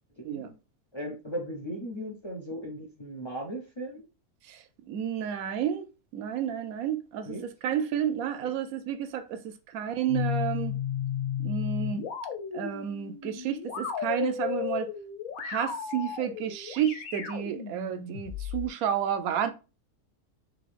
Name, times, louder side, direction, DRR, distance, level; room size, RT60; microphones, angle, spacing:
voice 1, 0.2-0.5 0.9-4.0 7.2-7.5 8.4-8.5, equal, 35° left, 0.4 m, -37 dB
voice 2, 4.5-5.9 6.1-7.4 7.6-10.7 11.4-12.0 12.5-14.9 15.4-19.5, right 9 dB, 75° right, 1.0 m, -31 dB
sound 1, 10.1-18.7, left 8 dB, 65° left, 1.3 m, -34 dB
3.7 x 3.4 x 3.3 m
omnidirectional pair, 1.6 m